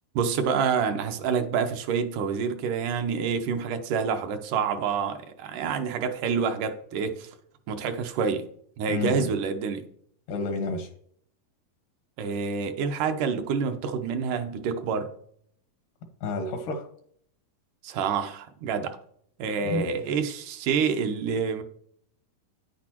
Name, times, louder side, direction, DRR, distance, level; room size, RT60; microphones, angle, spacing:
voice 1, 0.2-7.3 7.7-8.5 8.8-9.9 12.2-15.1 17.8-19.0 19.4-21.6, right 6 dB, 80° right, 7 dB, 2.3 m, -27 dB
voice 2, 8.9-9.3 10.3-10.9 16.2-16.9 19.6-20.0, left 3 dB, 85° left, 6 dB, 2.9 m, -30 dB
9.7 x 8.2 x 3.0 m, 0.64 s
omnidirectional pair, 3.7 m